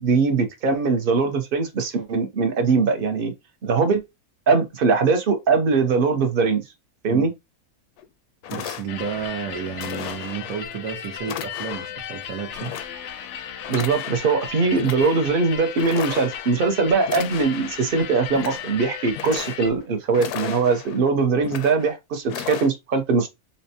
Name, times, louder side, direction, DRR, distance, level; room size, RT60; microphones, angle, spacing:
voice 1, 0.0-3.3 3.6-4.0 4.5-6.6 7.0-7.3 13.7-23.3, right 4 dB, 50° right, 0.7 m, -21 dB
sound 1, 8.0-8.1 8.4-9.3 9.8-10.6 11.2-12.0 12.5-13.3 13.6-14.4 14.7-15.3 15.8-16.6 17.0-17.8 18.2-18.8 19.1-19.8 20.1-21.0 21.4-21.9 22.3-22.7, left 9 dB, 90° left, 1.1 m, -35 dB
voice 2, 8.5-12.8, right 7 dB, 70° right, 1.2 m, -32 dB
sound 2, 8.9-19.7, left 8 dB, 65° left, 0.7 m, -36 dB
4.2 x 2.2 x 2.7 m
omnidirectional pair, 1.6 m